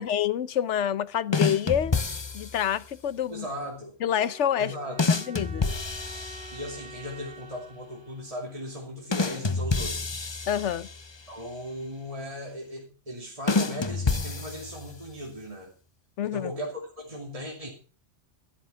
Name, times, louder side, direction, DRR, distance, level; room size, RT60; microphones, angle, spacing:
voice 1, 0.0-1.9 2.3-3.4 4.0-4.7 5.1-5.7 10.5-10.9 16.2-16.5, left 9 dB, 75° left, 1.1 m, -27 dB
sound 1, 1.3-2.7 5.0-7.0 9.1-11.3 13.5-15.1, left 4 dB, 25° left, 0.7 m, -28 dB
voice 2, 3.3-3.9 4.6-5.2 6.5-10.1 11.3-15.7 16.2-17.7, equal, 30° right, 2.8 m, -37 dB
sound 2, 4.1-9.2, right 2 dB, 60° right, 1.5 m, -48 dB
13.0 x 11.0 x 5.6 m
omnidirectional pair, 1.2 m